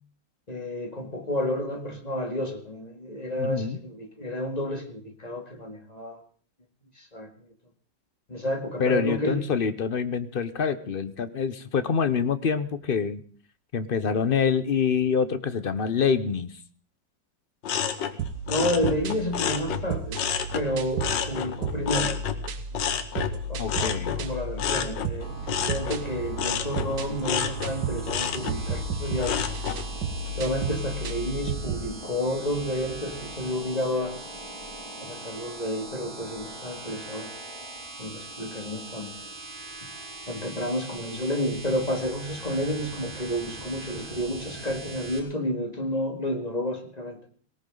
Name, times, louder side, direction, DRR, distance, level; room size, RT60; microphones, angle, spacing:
voice 1, 0.5-6.2 7.0-7.3 8.3-9.5 18.5-20.2 20.5-22.2 22.8-23.1 23.3-29.5 30.4-34.2 35.0-37.3 38.0-39.1 40.3-47.2, equal, 20° left, 4 dB, 2.2 m, -30 dB
voice 2, 3.4-3.8 8.8-13.2 13.7-16.5 23.6-24.2, left 6 dB, 45° left, 12 dB, 0.7 m, -26 dB
sound 1, 17.6-20.7 21.0-29.8 30.3-30.7, left 8 dB, 90° left, 1.8 m, -30 dB
sound 2, 18.2-31.9, right 4 dB, 75° right, 1.7 m, -33 dB
sound 3, 25.2-45.2, right 2 dB, 30° right, 3.4 m, -41 dB
18.5 x 18.5 x 3.9 m, 0.43 s
omnidirectional pair, 1.9 m